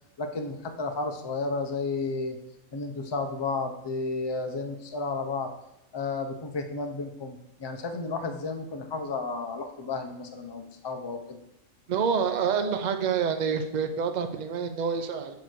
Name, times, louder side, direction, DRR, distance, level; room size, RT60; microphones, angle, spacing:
voice 1, 0.2-2.4 2.7-5.5 5.9-11.4, left 3 dB, 40° left, 5 dB, 0.3 m, -32 dB
voice 2, 11.9-15.4, right 6 dB, 55° right, 7 dB, 0.5 m, -27 dB
5.2 x 4.7 x 6.1 m, 0.84 s
omnidirectional pair, 1.4 m